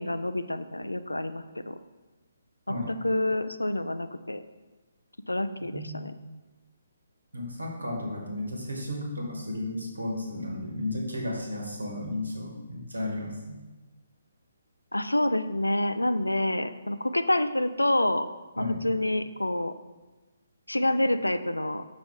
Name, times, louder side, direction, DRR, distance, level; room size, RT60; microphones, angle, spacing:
voice 1, 0.0-1.8 2.7-4.4 5.3-6.1 14.9-18.3 18.6-19.7 20.7-21.8, left 1 dB, 85° left, 12 dB, 0.3 m, -27 dB
voice 2, 5.6-6.0 7.3-13.6 18.6-18.8, left 1 dB, 75° right, 0 dB, 1.4 m, -34 dB
5.6 x 4.8 x 3.7 m, 1.2 s
figure-of-eight pair, 135°, 0 cm